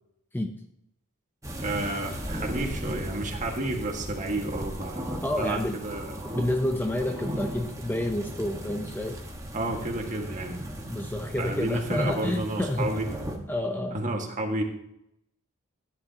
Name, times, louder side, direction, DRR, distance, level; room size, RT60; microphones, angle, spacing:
sound 1, 1.4-13.4, equal, 15° right, 1.4 m, -37 dB
voice 1, 1.6-6.1 9.5-10.6 11.4-13.1 13.9-14.6, right 2 dB, 35° right, 2 dB, 1.7 m, -31 dB
voice 2, 5.2-5.8 6.3-9.2 10.9-12.9 13.5-14.0, left 1 dB, 10° left, 5 dB, 0.6 m, -29 dB
14.5 x 10.0 x 2.9 m, 0.78 s
head